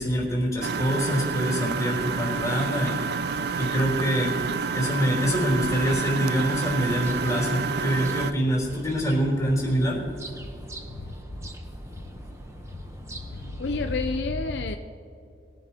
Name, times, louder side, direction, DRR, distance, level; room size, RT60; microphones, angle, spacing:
voice 1, 0.0-3.2 3.6-4.4 4.7-10.0, equal, 20° left, -3 dB, 3.5 m, -25 dB
Engine, 0.6-8.3, right 5 dB, 60° right, 0.4 m, -29 dB
sound 1, 1.3-8.0, right 1 dB, 30° right, 2.0 m, -46 dB
sound 2, 6.4-14.2, right 1 dB, 15° right, 0.9 m, -43 dB
voice 2, 13.3-14.8, left 3 dB, 70° left, 5 dB, 0.6 m, -29 dB
21.5 x 10.5 x 2.9 m, 2.6 s
head